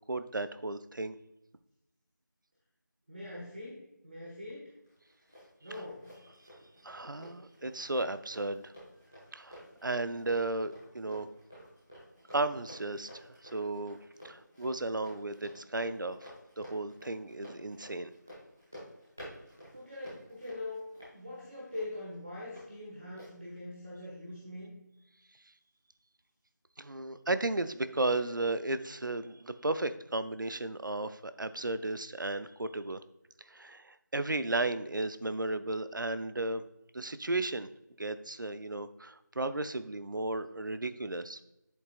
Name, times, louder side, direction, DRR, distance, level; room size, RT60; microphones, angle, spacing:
voice 1, 0.1-1.2 6.8-8.7 9.3-11.3 12.3-13.1 13.4-14.0 14.2-16.3 16.6-18.1 26.8-33.0 33.5-36.6 36.9-37.7 38.0-41.4, right 2 dB, 80° right, 12 dB, 0.6 m, -34 dB
voice 2, 3.1-4.7 5.6-6.1 19.7-20.9 21.1-24.7, left 1 dB, 30° right, -5 dB, 1.5 m, -43 dB
Run, 4.8-22.7 23.2-23.3, equal, 5° right, 0.7 m, -52 dB
8.0 x 7.1 x 2.4 m, 0.90 s
figure-of-eight pair, 175°, 10 cm